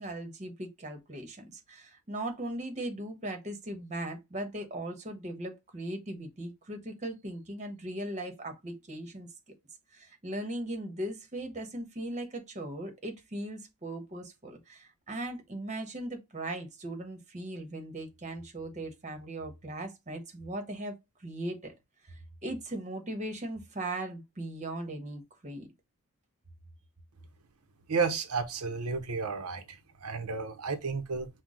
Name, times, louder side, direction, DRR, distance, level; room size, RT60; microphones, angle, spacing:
voice 1, 0.0-9.3 9.9-21.0 21.2-21.7 22.1-25.7, right 1 dB, 30° right, 1.2 m, -38 dB
voice 2, 27.9-31.3, right 5 dB, 80° right, 0.8 m, -32 dB
6.0 x 2.3 x 3.7 m
head